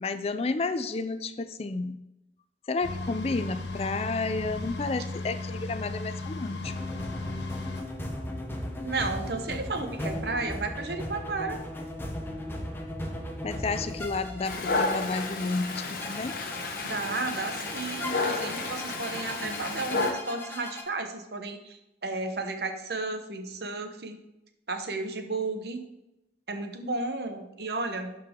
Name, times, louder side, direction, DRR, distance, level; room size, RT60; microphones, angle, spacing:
voice 1, 0.0-2.0 2.7-7.1 13.4-16.4, left 3 dB, 35° left, 11 dB, 0.4 m, -31 dB
sound 1, 2.8-7.8, left 2 dB, 80° left, 1.0 m, -35 dB
sound 2, 6.6-20.8, left 1 dB, 10° left, 0.9 m, -37 dB
voice 2, 8.8-11.6 16.8-24.2 24.7-25.8 26.5-28.1, right 3 dB, 65° right, 6 dB, 1.0 m, -33 dB
Dog, 14.4-20.1, left 3 dB, 55° left, 1.0 m, -32 dB
11.5 x 4.8 x 3.7 m, 0.90 s
head